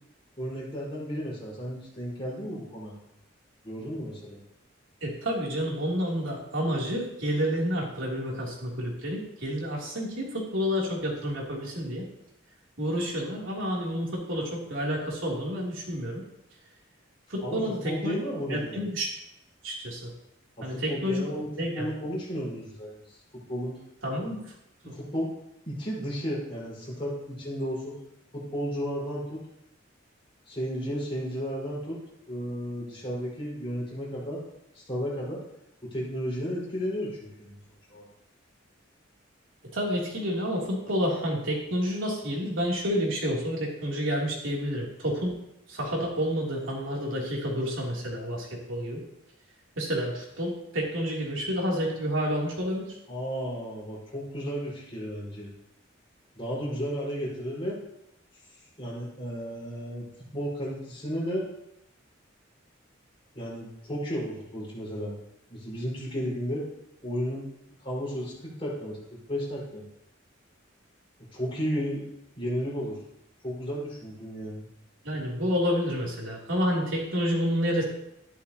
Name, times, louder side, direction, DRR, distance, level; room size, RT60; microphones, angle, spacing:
voice 1, 0.4-2.9 3.6-4.4 17.4-18.8 20.6-23.8 24.8-25.3 25.6-28.0 28.3-29.4 30.5-32.0 32.3-34.4 34.7-35.4 35.8-37.5 37.9-38.1 53.1-55.5 56.3-57.8 58.8-60.0 60.3-61.5 63.3-65.1 65.5-66.6 67.0-67.4 67.8-69.8 71.3-72.1 72.4-73.0 73.4-74.6, equal, 30° left, -6 dB, 5.0 m, -33 dB
voice 2, 5.0-12.1 12.8-16.2 17.3-18.2 18.5-19.1 19.6-20.1 20.6-21.2 21.6-21.9 24.0-24.3 39.7-45.3 45.7-49.0 49.8-52.9 75.0-77.8, equal, 80° right, -3 dB, 3.2 m, -29 dB
13.0 x 11.5 x 3.0 m, 0.81 s
head